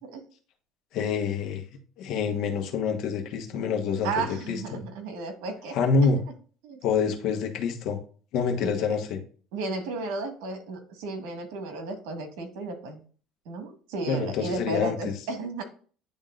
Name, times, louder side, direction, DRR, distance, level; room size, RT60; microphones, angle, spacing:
voice 1, 0.9-1.6 2.0-4.8 5.7-6.2 6.8-8.0 8.3-9.2 14.1-15.0, left 5 dB, 65° left, 5 dB, 1.3 m, -26 dB
voice 2, 4.0-5.8 6.0-6.2 6.6-6.8 8.6-9.0 9.5-13.0 13.4-15.6, right 3 dB, 90° right, 5 dB, 1.6 m, -34 dB
10.5 x 3.6 x 2.5 m, 0.41 s
cardioid pair, 135°, 0 cm